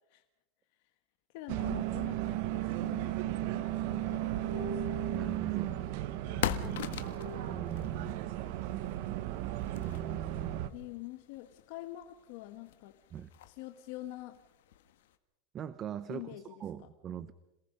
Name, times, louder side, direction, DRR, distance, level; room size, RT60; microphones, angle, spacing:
voice 1, 1.3-4.9 6.3-7.1 10.7-12.9 13.5-14.4 16.1-16.4, left 16 dB, 55° left, 7 dB, 1.2 m, -46 dB
sound 1, 1.5-10.7, right 15 dB, 55° right, 1.2 m, -35 dB
sound 2, 2.6-7.6, right 2 dB, 75° right, 3.8 m, -45 dB
sound 3, 4.8-15.2, left 11 dB, 80° left, 1.4 m, -43 dB
voice 2, 5.1-5.7 7.5-8.2 9.8-10.7 13.1-13.3 15.5-17.3, right 9 dB, 25° right, 14 dB, 0.7 m, -41 dB
27.0 x 19.0 x 5.4 m, 0.93 s
supercardioid pair, 160°, 0 cm